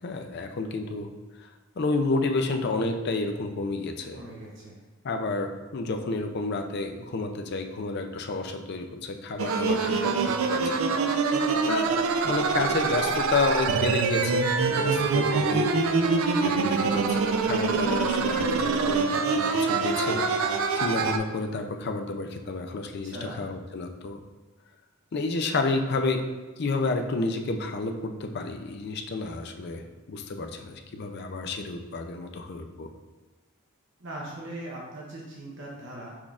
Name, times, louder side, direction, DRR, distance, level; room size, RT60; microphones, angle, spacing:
voice 1, 0.0-1.1 1.8-4.2 5.0-11.4 11.6-11.9 12.2-15.7 16.4-24.2 25.1-26.2 26.6-32.9, left 3 dB, 50° left, 5 dB, 0.4 m, -30 dB
voice 2, 4.1-4.8 23.0-23.4 34.0-36.2, right 1 dB, 55° right, -4 dB, 0.8 m, -40 dB
sound 1, 9.4-21.2, right 4 dB, 70° right, 0.4 m, -25 dB
6.1 x 3.5 x 2.4 m, 1.2 s
head